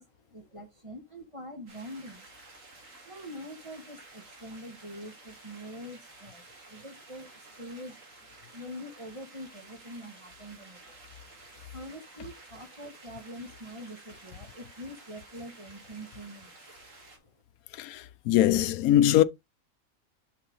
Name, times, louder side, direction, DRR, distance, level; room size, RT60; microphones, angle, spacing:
voice 1, 0.0-2.3 2.6-2.7 3.0-11.0 11.3-11.4 11.7-17.3, equal, 25° right, 1.4 m, -45 dB
sound 1, 1.7-17.2, right 2 dB, 65° right, 2.5 m, -52 dB
voice 2, 17.8-19.2, left 12 dB, 90° left, 1.1 m, -22 dB
6.9 x 4.9 x 3.8 m
omnidirectional pair, 1.5 m